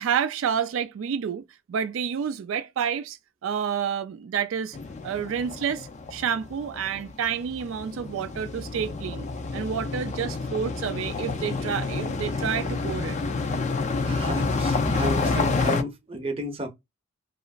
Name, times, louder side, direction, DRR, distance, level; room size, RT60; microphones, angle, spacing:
voice 1, 0.0-4.8 5.0-13.2, right 7 dB, 90° right, 0.3 m, -29 dB
sound 1, 4.7-15.8, left 3 dB, 35° left, 0.4 m, -29 dB
voice 2, 14.0-16.7, right 1 dB, 30° right, 0.7 m, -32 dB
2.9 x 2.4 x 2.4 m
head